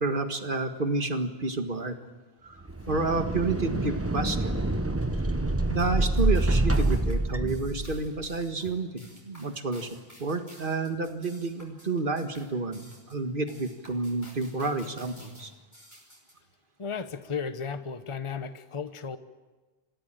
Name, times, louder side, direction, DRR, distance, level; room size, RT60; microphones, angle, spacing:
voice 1, 0.0-1.9 2.4-4.5 5.7-9.9 10.2-15.5, right 3 dB, 55° right, 7 dB, 1.9 m, -30 dB
sound 1, 2.6-8.2, right 2 dB, 15° right, 1.1 m, -27 dB
sound 2, 5.8-16.3, equal, 15° left, 5.4 m, -53 dB
voice 2, 16.8-19.2, left 6 dB, 30° left, 10 dB, 1.0 m, -34 dB
26.5 x 16.0 x 9.0 m, 1.3 s
omnidirectional pair, 1.0 m